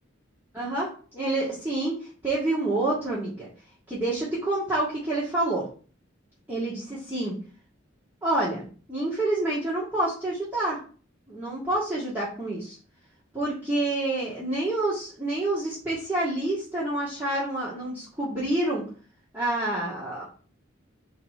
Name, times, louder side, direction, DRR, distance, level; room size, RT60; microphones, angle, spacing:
voice 1, 0.5-2.0 2.2-3.5 3.9-5.7 6.5-7.3 8.2-8.6 8.9-10.8 11.3-12.8 13.3-18.8 19.3-20.2, right 2 dB, 10° right, -9 dB, 1.7 m, -28 dB
4.7 x 4.2 x 5.4 m, 0.41 s
head